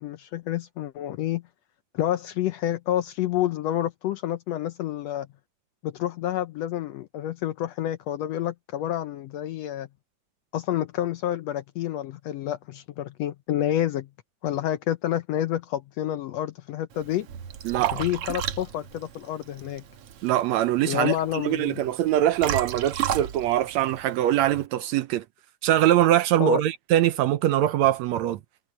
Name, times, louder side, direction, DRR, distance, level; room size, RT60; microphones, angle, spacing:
voice 1, 0.0-1.4 1.9-5.3 5.8-9.9 10.5-14.1 14.4-17.3 17.9-19.8 20.8-21.8 26.4-26.6, left 12 dB, 75° left, 1.6 m, -29 dB
Liquid, 16.9-24.7, right 10 dB, 60° right, 1.9 m, -34 dB
voice 2, 17.7-18.0 20.2-25.3 25.6-28.4, right 13 dB, 75° right, 1.8 m, -23 dB
omnidirectional pair, 3.5 m